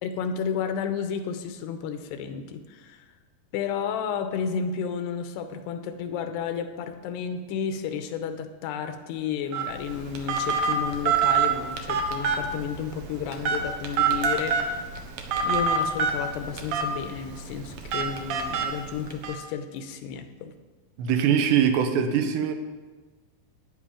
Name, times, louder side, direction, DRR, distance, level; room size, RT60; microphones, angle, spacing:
voice 1, 0.0-3.0 3.5-14.9 15.4-20.5, left 7 dB, 85° left, 8 dB, 2.9 m, -32 dB
Telephone, 9.5-19.3, right 5 dB, 65° right, 2.2 m, -27 dB
voice 2, 21.0-22.6, right 8 dB, 90° right, 6 dB, 3.3 m, -22 dB
13.5 x 9.9 x 5.0 m, 1.3 s
omnidirectional pair, 4.8 m